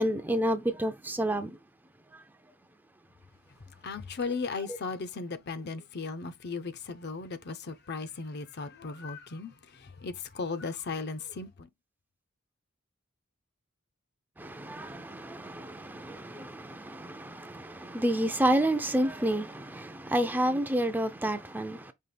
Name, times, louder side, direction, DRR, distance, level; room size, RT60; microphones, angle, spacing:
voice 1, 0.0-1.5 14.4-21.9, right 1 dB, 10° right, 0.4 m, -29 dB
voice 2, 3.8-11.7, left 4 dB, 50° left, 0.6 m, -36 dB
5.5 x 2.4 x 3.2 m
head